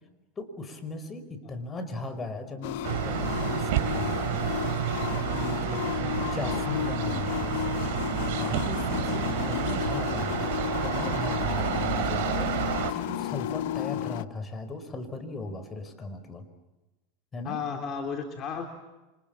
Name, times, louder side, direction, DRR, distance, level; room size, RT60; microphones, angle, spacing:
voice 1, 0.4-4.5 5.1-7.9 8.3-12.5 12.9-16.5 17.3-17.6, left 2 dB, 20° left, 10 dB, 5.3 m, -37 dB
sound 1, 2.6-14.2, left 13 dB, 70° left, 0.9 m, -32 dB
sound 2, 2.8-12.9, right 12 dB, 70° right, 3.4 m, -30 dB
voice 2, 17.4-18.6, left 6 dB, 40° left, 4 dB, 3.5 m, -34 dB
29.5 x 26.0 x 7.3 m, 1.1 s
supercardioid pair, 110°, 0 cm